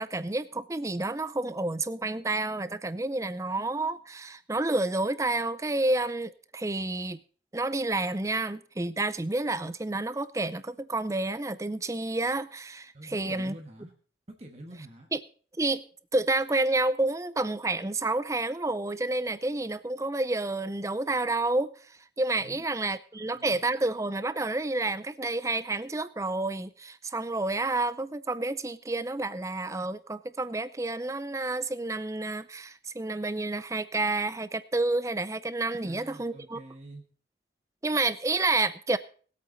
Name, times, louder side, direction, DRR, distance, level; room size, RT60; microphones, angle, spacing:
voice 1, 0.0-7.2 7.5-13.5 15.1-15.2 15.6-15.8 16.1-21.7 22.2-36.6 37.8-39.0, right 2 dB, 15° right, 0.5 m, -29 dB
voice 2, 12.9-13.9 14.3-15.1 22.4-22.6 23.1-23.6 35.7-37.0, right 1 dB, 35° right, 1.4 m, -46 dB
20.0 x 8.6 x 4.0 m
head